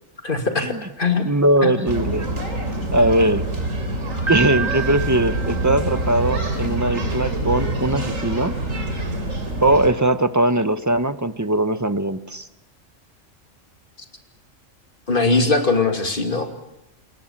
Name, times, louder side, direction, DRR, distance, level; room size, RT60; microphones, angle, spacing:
voice 1, 0.2-1.2 1.6-1.7 15.1-16.5, left 3 dB, 40° left, 5 dB, 2.9 m, -20 dB
voice 2, 1.2-2.3 2.9-3.5 4.3-8.6 9.6-12.5, right 1 dB, 15° right, 11 dB, 0.9 m, -20 dB
sound 1, 1.9-9.9, right 1 dB, 85° right, 3.9 m, -26 dB
Piano, 4.3-6.4, right 7 dB, 45° right, 1.7 m, -29 dB
28.5 x 21.5 x 7.4 m, 0.90 s
omnidirectional pair, 1.3 m